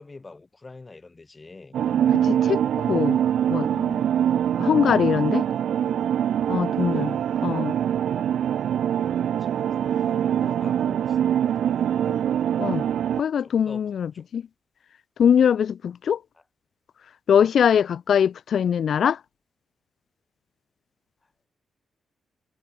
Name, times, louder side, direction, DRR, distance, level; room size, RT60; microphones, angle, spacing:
voice 1, 0.0-1.8 5.1-6.1 6.5-7.2 8.5-12.2 13.1-13.8 14.1-14.3 21.2-21.3, left 3 dB, 20° left, 4.3 m, -46 dB
sound 1, 1.7-13.2, right 9 dB, 75° right, 0.7 m, -24 dB
voice 2, 2.1-3.2 3.5-4.0 4.6-5.5 6.5-7.1 7.4-7.8 12.6-12.8 13.2-14.4 15.2-16.2 17.3-19.2, left 8 dB, 60° left, 0.6 m, -22 dB
wide cardioid pair, 160°, 0 cm